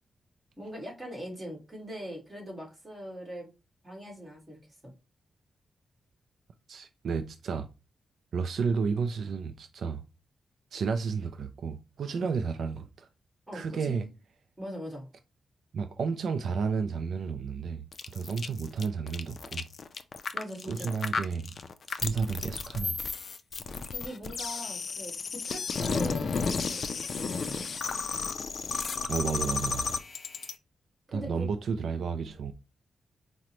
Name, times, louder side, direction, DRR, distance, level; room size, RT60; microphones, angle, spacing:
voice 1, 0.6-3.5 3.8-4.9 12.1-12.3 13.5-14.1 14.6-15.1 20.3-20.9 23.9-25.1 25.5-27.7 31.1-31.5, equal, 20° right, 1.7 m, -41 dB
voice 2, 6.7-7.7 8.3-10.0 10.7-13.1 13.5-14.1 15.7-17.8 18.1-19.7 20.6-21.5 21.9-23.0 29.1-29.9 31.1-32.5, right 5 dB, 70° right, 0.3 m, -32 dB
sound 1, 17.9-30.5, left 5 dB, 50° left, 0.4 m, -33 dB
4.9 x 2.1 x 2.9 m
cardioid pair, 110°, 0 cm